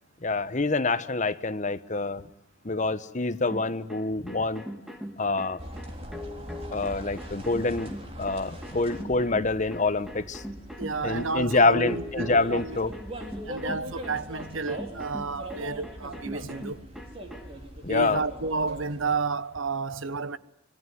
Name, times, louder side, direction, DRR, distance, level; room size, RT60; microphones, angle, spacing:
voice 1, 0.2-2.3 2.6-4.6 5.2-5.6 6.7-10.4 11.0-12.9 17.8-18.2, left 3 dB, 40° left, 1.1 m, -26 dB
sound 1, 3.5-17.5, equal, ahead, 2.3 m, -41 dB
sound 2, 5.6-19.1, equal, 30° right, 3.7 m, -42 dB
voice 2, 10.8-12.8 13.5-16.8 17.9-20.4, right 4 dB, 80° right, 1.2 m, -31 dB
25.5 x 22.5 x 9.6 m
head